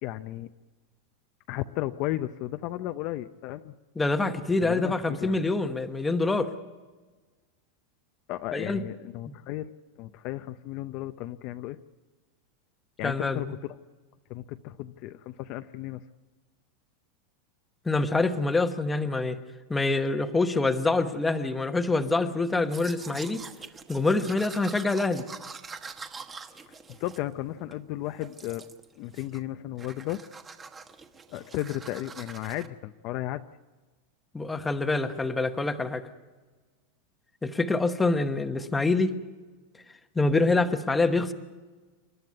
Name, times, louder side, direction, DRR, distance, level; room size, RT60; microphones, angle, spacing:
voice 1, 0.0-0.5 1.5-3.7 4.6-5.4 8.3-9.7 10.0-11.8 13.0-13.8 14.3-16.0 27.0-28.6 29.0-30.2 31.3-33.4, left 15 dB, 40° left, 9 dB, 0.6 m, -34 dB
voice 2, 4.0-6.5 8.5-8.8 9.3-9.4 13.0-13.4 17.8-19.4 19.7-23.4 23.9-25.2 34.3-36.0 37.4-39.1 40.1-41.3, left 3 dB, 5° left, 8 dB, 1.0 m, -26 dB
Domestic sounds home sounds, 22.6-27.8 28.2-28.9 29.1-29.5 29.8-32.7, right 5 dB, 15° right, 1.1 m, -45 dB
28.0 x 12.5 x 9.4 m, 1.3 s
supercardioid pair, 165°, 0 cm